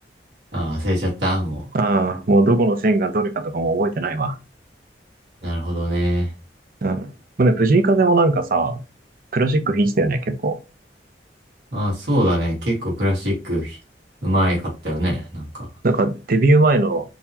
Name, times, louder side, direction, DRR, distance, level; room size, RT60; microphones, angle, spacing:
voice 1, 0.5-1.6 5.4-6.3 11.7-13.8 14.2-15.7, equal, 80° right, 1.7 m, -23 dB
voice 2, 1.7-4.4 6.8-7.1 7.4-8.8 9.3-10.6 15.8-17.0, right 2 dB, 55° right, 0.6 m, -19 dB
3.9 x 2.8 x 2.7 m
head